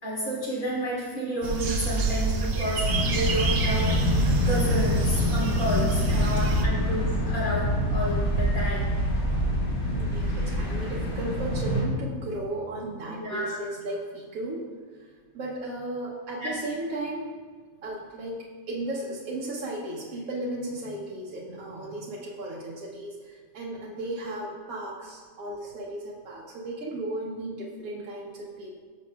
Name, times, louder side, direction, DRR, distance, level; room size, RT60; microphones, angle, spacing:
voice 1, 0.0-3.9 4.4-9.0 13.0-13.6 16.4-16.5, equal, 80° left, -8 dB, 3.2 m, -31 dB
sound 1, 1.4-6.6, right 3 dB, 55° right, 0.7 m, -27 dB
sound 2, 2.8-11.8, left 1 dB, 55° left, 2.2 m, -26 dB
voice 2, 6.3-6.7 9.9-14.6 15.3-17.3 17.8-28.8, right 1 dB, 75° right, -4 dB, 1.4 m, -35 dB
13.5 x 6.1 x 2.3 m, 1.6 s
omnidirectional pair, 1.5 m